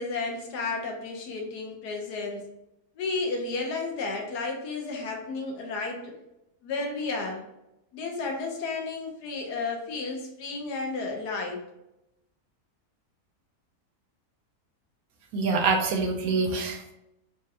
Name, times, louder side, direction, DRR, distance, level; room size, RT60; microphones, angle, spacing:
voice 1, 0.0-2.5 3.0-6.1 6.6-7.4 7.9-11.6, left 3 dB, 90° left, 1 dB, 1.4 m, -32 dB
voice 2, 15.3-16.9, right 4 dB, 70° right, 2 dB, 1.0 m, -25 dB
4.2 x 2.4 x 2.8 m, 0.88 s
omnidirectional pair, 1.7 m